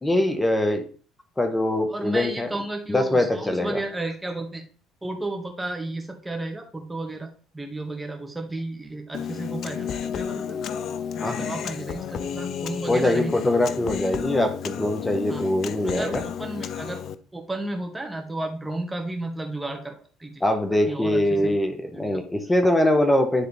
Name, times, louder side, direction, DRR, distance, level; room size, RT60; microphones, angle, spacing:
voice 1, 0.0-0.9 1.4-2.5 2.9-3.8 11.2-11.5 12.9-16.2 20.4-23.5, left 1 dB, 15° left, 5 dB, 1.4 m, -23 dB
voice 2, 1.9-4.6 5.0-10.6 11.1-13.4 15.3-15.4 15.8-17.0 17.3-20.4 20.9-21.5 21.9-22.2, right 2 dB, 15° right, 3 dB, 2.0 m, -33 dB
Human voice, 9.1-17.2, left 8 dB, 60° left, 0.5 m, -32 dB
10.0 x 3.8 x 3.5 m, 0.39 s
hypercardioid pair, 65°, 0 cm